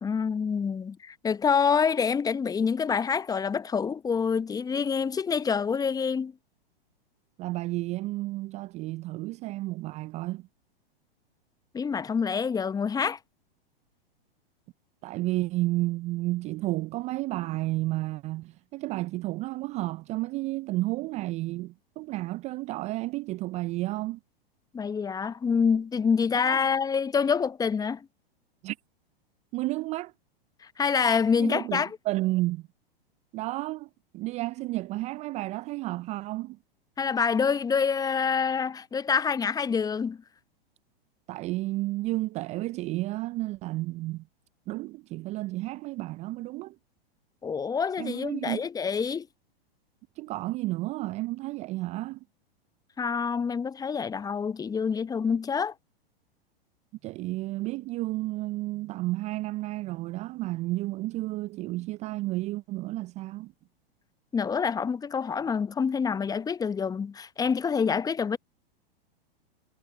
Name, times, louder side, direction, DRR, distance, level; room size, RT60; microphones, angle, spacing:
voice 1, 0.0-6.3 11.7-13.2 24.7-28.1 30.8-31.9 37.0-40.2 47.4-49.3 53.0-55.7 64.3-68.4, left 6 dB, 10° left, 0.8 m, -26 dB
voice 2, 7.4-10.5 15.0-24.2 26.4-26.6 28.6-28.8 29.5-30.1 31.4-32.7 33.3-36.6 41.3-44.3 44.7-46.8 48.0-48.6 50.2-52.2 57.0-63.5, right 19 dB, 25° right, 0.4 m, -32 dB
hypercardioid pair, 105°, 30 cm